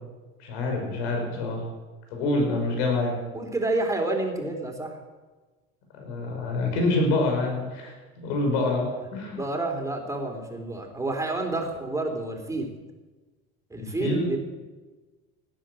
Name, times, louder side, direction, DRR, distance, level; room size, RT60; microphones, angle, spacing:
voice 1, 0.4-1.6 2.1-3.2 5.9-8.9 9.1-9.4 13.8-14.3, left 2 dB, 75° left, 2 dB, 5.5 m, -26 dB
voice 2, 3.3-5.0 9.3-12.7 13.7-14.4, right 2 dB, 10° right, 2 dB, 3.5 m, -29 dB
17.5 x 10.5 x 7.8 m, 1.3 s
supercardioid pair, 105°, 33 cm